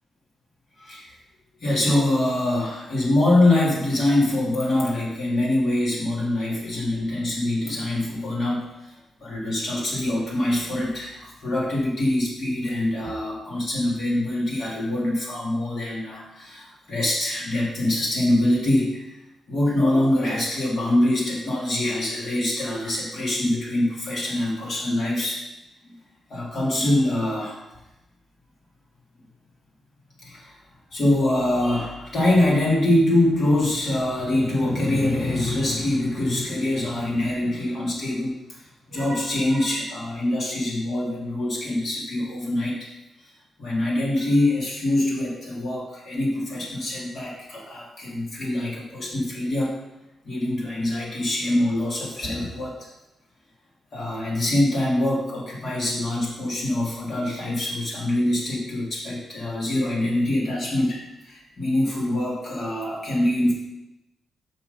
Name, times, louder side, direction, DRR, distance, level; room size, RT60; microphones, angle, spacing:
voice 1, 0.8-1.1 1.6-19.1 19.5-25.4 25.8-25.9 26.3-27.6 30.2-30.6 30.9-38.6 38.9-42.9 43.6-49.9 50.2-52.8 53.9-63.5, left 1 dB, 40° left, -5 dB, 2.6 m, -24 dB
6.0 x 5.8 x 5.4 m, 0.95 s
wide cardioid pair, 170°, 0 cm